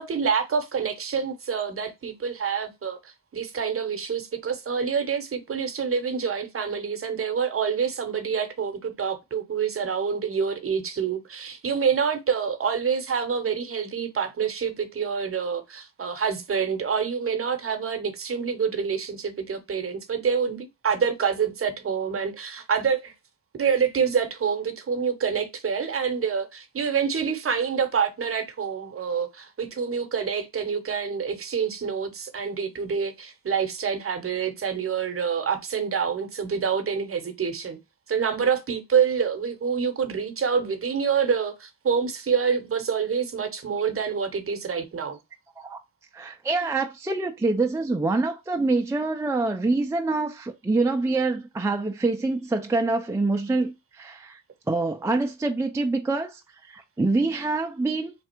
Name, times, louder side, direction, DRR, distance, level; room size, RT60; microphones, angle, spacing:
voice 1, 0.0-23.1 23.5-37.8 38.1-45.2, right 6 dB, 40° right, 0.9 m, -27 dB
voice 2, 46.1-54.4 54.7-58.1, right 3 dB, 10° right, 0.5 m, -25 dB
3.4 x 2.4 x 4.4 m
cardioid pair, 70°, 34 cm